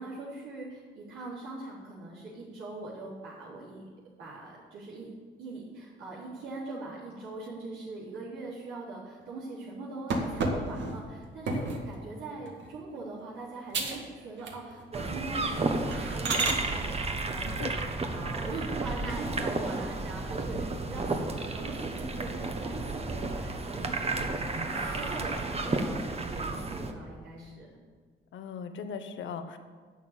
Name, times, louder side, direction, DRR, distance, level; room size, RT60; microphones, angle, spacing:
voice 1, 0.0-3.8 4.2-5.1 5.4-25.4 25.7-27.7, right 3 dB, 85° right, -9 dB, 3.8 m, -41 dB
sound 1, 10.1-11.9 12.5-12.8 13.2-13.3 13.7-14.1 14.4-14.9 15.3-15.4 15.9-16.6 18.6-19.3 19.8-19.9 20.3-20.4 20.6-21.4 21.8-22.4 22.8-23.4 24.0-25.7, right 3 dB, 65° right, 2.1 m, -34 dB
sound 2, 14.9-26.9, right 3 dB, 30° right, 1.3 m, -32 dB
voice 2, 28.3-29.6, left 6 dB, 70° left, 8 dB, 1.2 m, -38 dB
11.0 x 6.8 x 9.1 m, 1.5 s
cardioid pair, 90°, 20 cm